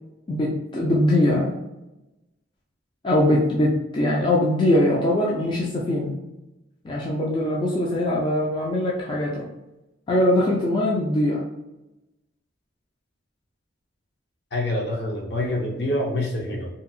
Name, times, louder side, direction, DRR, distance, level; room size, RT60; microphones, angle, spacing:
voice 1, 0.3-1.5 3.0-6.1 6.8-9.5 10.1-11.4, left 1 dB, 25° left, -4 dB, 0.3 m, -22 dB
voice 2, 14.5-16.7, left 1 dB, 60° left, -1 dB, 0.7 m, -26 dB
2.7 x 2.3 x 2.5 m, 0.96 s
head